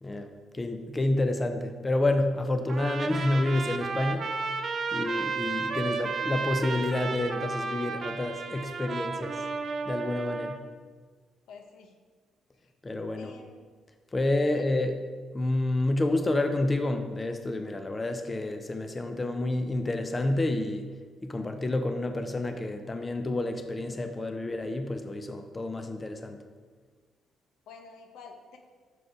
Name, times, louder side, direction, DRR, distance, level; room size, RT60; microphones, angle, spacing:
voice 1, 0.0-4.3 4.9-9.4 9.9-10.6 12.8-13.3 14.1-14.9 15.3-20.9 21.2-26.4, left 2 dB, 25° left, 7 dB, 0.5 m, -29 dB
Trumpet, 2.7-10.6, right 4 dB, 50° right, 0.6 m, -33 dB
voice 2, 11.5-11.9 13.2-13.7 14.4-14.8 27.7-28.6, left 5 dB, 85° left, 3 dB, 0.9 m, -49 dB
6.3 x 4.8 x 4.8 m, 1.5 s
cardioid pair, 90°, 0 cm